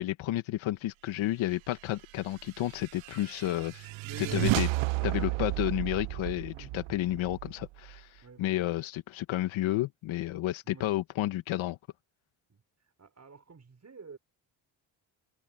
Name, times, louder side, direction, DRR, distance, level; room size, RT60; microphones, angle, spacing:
voice 1, 0.0-3.9 4.2-4.7 5.0-11.8, left 15 dB, 75° left, 1.8 m, -31 dB
sound 1, 2.4-8.0, right 23 dB, 75° right, 0.8 m, -33 dB
voice 2, 4.0-4.8 5.0-5.4 6.5-6.9 8.2-8.6 10.6-10.9 12.5-12.6 13.0-14.2, right 5 dB, 35° right, 6.5 m, -48 dB
supercardioid pair, 65°, 47 cm